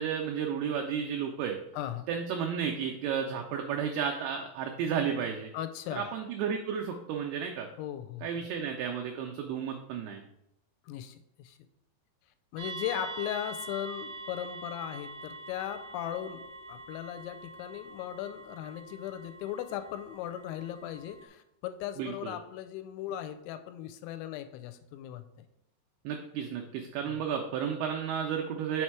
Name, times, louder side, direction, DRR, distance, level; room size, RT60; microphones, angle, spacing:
voice 1, 0.0-1.6 2.1-5.5 5.9-7.7 8.2-10.2 22.0-22.4 26.0-28.8, right 7 dB, 90° right, 2 dB, 2.2 m, -32 dB
voice 2, 1.7-2.1 5.5-6.1 7.8-8.3 10.9-11.6 12.5-16.4 16.7-25.2 27.0-27.2, left 11 dB, 90° left, 10 dB, 2.9 m, -38 dB
sound 1, 12.6-21.3, right 2 dB, 65° right, 2.5 m, -44 dB
6.3 x 4.3 x 4.6 m, 0.82 s
omnidirectional pair, 5.2 m